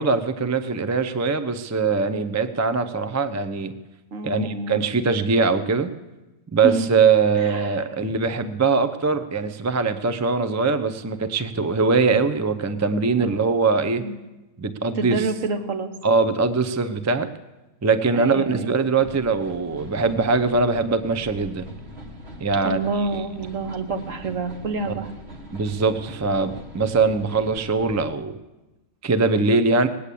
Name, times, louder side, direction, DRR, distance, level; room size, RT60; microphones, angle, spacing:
voice 1, 0.0-3.7 4.2-5.9 6.5-14.0 14.6-15.3 16.0-17.3 17.8-21.7 22.4-22.8 23.1-23.2 24.9-25.0 25.5-28.3 29.0-29.9, right 4 dB, 25° right, 11 dB, 0.4 m, -22 dB
voice 2, 4.1-4.8 6.6-6.9 7.4-7.8 13.1-13.4 14.0-14.1 14.9-15.9 18.1-18.7 22.6-25.1, right 3 dB, 65° right, 6 dB, 1.6 m, -28 dB
sound 1, 19.0-28.1, right 1 dB, 50° right, 1.5 m, -41 dB
19.0 x 8.5 x 8.4 m, 1.1 s
omnidirectional pair, 1.5 m